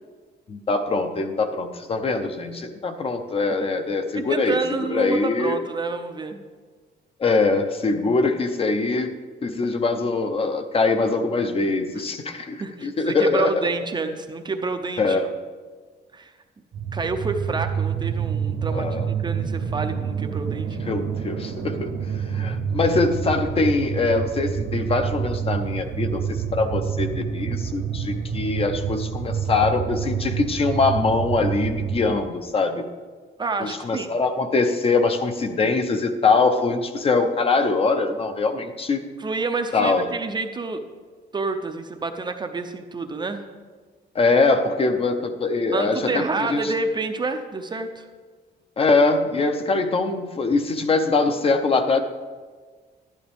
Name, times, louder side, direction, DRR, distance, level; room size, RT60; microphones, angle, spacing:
voice 1, 0.5-4.6 4.9-5.6 7.2-9.1 9.4-13.7 15.0-15.3 18.7-19.1 20.9-21.9 22.3-32.8 33.6-39.0 39.7-40.0 44.1-46.7 48.8-52.0, left 3 dB, 30° left, 7 dB, 0.6 m, -23 dB
voice 2, 4.2-6.4 12.3-15.2 16.1-16.3 16.9-18.9 19.2-20.8 33.4-34.1 39.2-40.8 41.3-43.4 45.7-48.0, right 3 dB, 25° right, 6 dB, 0.5 m, -28 dB
sound 1, 16.7-32.2, right 7 dB, 70° right, 0.8 m, -28 dB
12.0 x 11.5 x 3.5 m, 1.5 s
cardioid pair, 175°, 19 cm